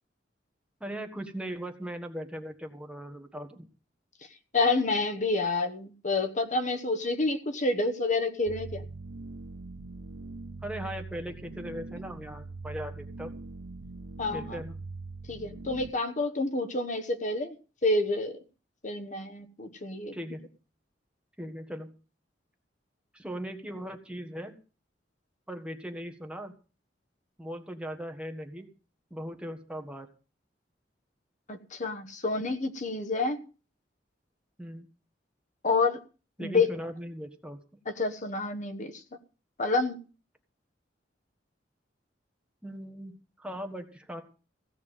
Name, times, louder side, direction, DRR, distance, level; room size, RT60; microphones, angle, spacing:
voice 1, 0.8-3.7 10.6-13.3 14.3-14.8 20.1-20.4 21.4-21.9 23.1-24.6 25.5-26.5 27.4-28.7 29.1-30.1 34.6-34.9 36.4-37.6 42.6-43.1 43.4-44.2, equal, 5° right, 5 dB, 1.6 m, -39 dB
voice 2, 4.5-8.8 14.2-14.6 15.3-17.5 17.8-18.4 18.8-20.1 31.5-33.4 35.6-36.0 36.4-36.7 38.0-39.0 39.6-40.0, left 3 dB, 45° left, 7 dB, 1.1 m, -28 dB
sound 1, 8.5-15.9, right 3 dB, 85° right, 0.8 m, -42 dB
16.5 x 6.0 x 9.1 m, 0.36 s
head